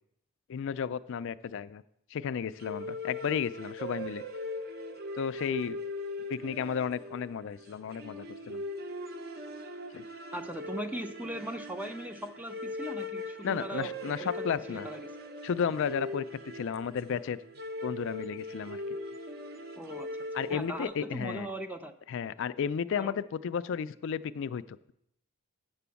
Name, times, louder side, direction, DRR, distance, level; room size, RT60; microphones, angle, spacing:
voice 1, 0.5-1.8 2.1-4.2 5.2-5.8 6.3-8.6 9.9-10.0 13.4-14.9 15.4-16.3 16.5-17.4 17.8-18.8 20.3-21.5 22.1-24.8, left 7 dB, 60° left, 14 dB, 0.3 m, -33 dB
sound 1, 2.6-21.1, left 1 dB, 45° right, 0.7 m, -40 dB
voice 2, 10.3-13.9 14.2-15.1 19.8-20.1 20.5-21.9 23.0-23.2, right 1 dB, 5° right, 7 dB, 0.4 m, -39 dB
7.6 x 6.1 x 6.9 m, 0.77 s
head